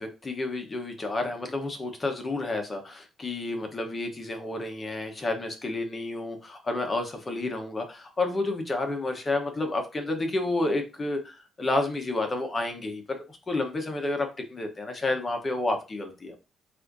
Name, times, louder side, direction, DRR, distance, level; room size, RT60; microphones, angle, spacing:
voice 1, 0.0-16.4, left 2 dB, 30° left, 4 dB, 0.9 m, -30 dB
7.4 x 2.6 x 2.6 m, 0.31 s
cardioid pair, 90°, 0 cm